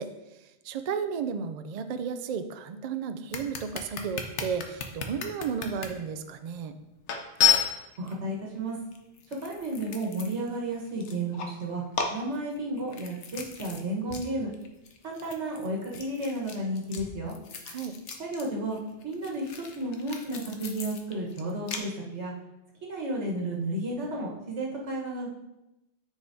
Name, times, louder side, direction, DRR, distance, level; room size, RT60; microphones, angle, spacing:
voice 1, 0.0-6.8 17.7-18.0, right 6 dB, 60° right, 9 dB, 0.4 m, -33 dB
sound 1, 3.3-5.9 6.5-6.6 7.1-8.1 8.9-10.6 10.9-11.6 11.9-13.8 14.1-14.3 14.5-18.5 18.7-21.8, left 8 dB, 85° left, 1.1 m, -32 dB
voice 2, 8.0-8.8 9.4-11.8 12.1-14.5 15.0-17.3 18.2-18.8 19.0-22.3 22.8-25.3, right 1 dB, 80° right, -2 dB, 1.6 m, -32 dB
9.5 x 4.9 x 2.7 m, 0.95 s
omnidirectional pair, 1.2 m